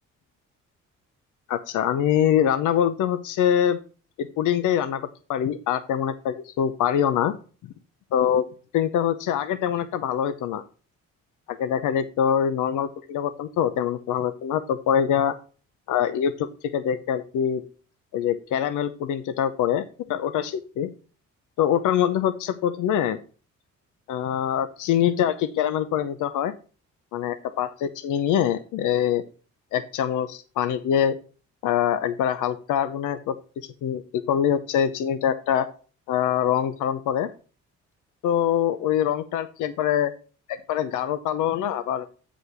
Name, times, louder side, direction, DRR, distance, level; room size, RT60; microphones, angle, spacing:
voice 1, 1.5-3.8 4.2-7.3 8.1-8.4 8.7-10.6 11.5-15.4 15.9-17.6 18.1-20.9 21.6-23.2 24.1-26.5 27.1-29.2 29.7-31.2 31.6-34.0 34.3-35.7 36.1-37.3 38.2-40.1 40.5-42.1, left 9 dB, 85° left, 11 dB, 0.7 m, -24 dB
8.2 x 5.1 x 5.0 m, 0.37 s
cardioid pair, 90°, 30 cm